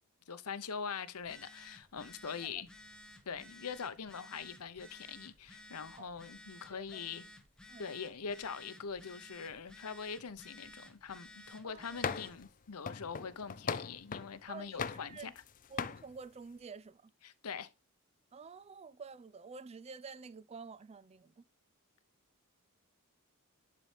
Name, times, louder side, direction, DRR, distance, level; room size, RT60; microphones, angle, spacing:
voice 1, 0.3-2.7 3.3-7.3 7.8-15.3 17.2-17.7, left 6 dB, 80° left, 0.8 m, -43 dB
Telephone, 1.1-12.4, left 1 dB, 5° left, 1.1 m, -55 dB
voice 2, 6.0-6.4 6.7-7.0 7.7-8.0 11.6-12.0 14.5-15.3 15.7-17.1 18.3-21.4, right 5 dB, 30° right, 0.4 m, -50 dB
sound 1, 12.0-12.4 12.9-14.3 14.8-15.5 15.8-16.0, left 6 dB, 35° left, 0.4 m, -38 dB
10.5 x 4.2 x 3.3 m
head